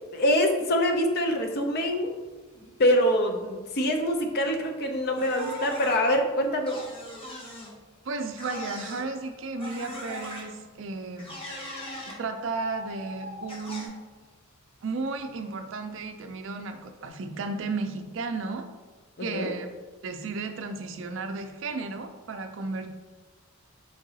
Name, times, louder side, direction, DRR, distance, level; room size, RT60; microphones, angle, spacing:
voice 1, 0.1-2.1 2.6-6.8 19.2-19.5, equal, 50° left, 5 dB, 0.5 m, -25 dB
Bird, 2.4-3.0 3.3-3.4 3.7-4.9 5.1-7.0 7.8-7.9 8.6-8.7 8.8-9.0 9.6-10.1 11.0-11.1 11.5-11.6 11.8-14.1 14.4-14.8 15.1-16.4 16.8-17.0, equal, 80° left, 0.7 m, -44 dB
sound 1, 5.2-6.0 6.7-7.7 8.4-9.1 9.6-10.4 11.2-12.2 13.5-13.9, equal, 25° left, 0.8 m, -39 dB
voice 2, 8.0-11.3 12.0-13.9 14.8-18.7 19.2-19.7 20.0-22.9, right 3 dB, 60° right, 7 dB, 0.4 m, -34 dB
4.5 x 3.8 x 2.7 m, 1.3 s
head